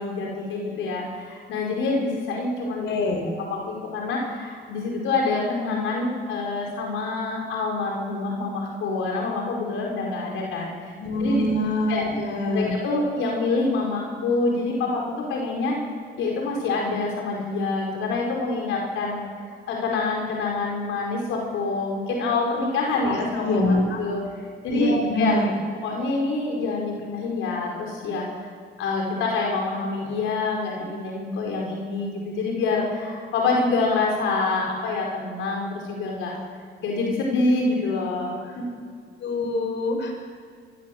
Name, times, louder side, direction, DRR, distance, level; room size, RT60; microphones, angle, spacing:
voice 1, 0.0-3.0 3.4-10.9 11.2-11.5 11.9-12.1 12.5-15.8 16.2-19.2 19.7-24.2 24.6-25.4 25.8-28.2 28.8-36.3 36.8-38.7, left 3 dB, 85° left, -1 dB, 4.8 m, -26 dB
voice 2, 2.8-3.2 11.0-12.7 23.1-24.0 24.7-25.5 39.2-40.1, left 1 dB, 70° left, 3 dB, 4.9 m, -25 dB
24.0 x 15.5 x 7.8 m, 2.2 s
cardioid pair, 90°, 20 cm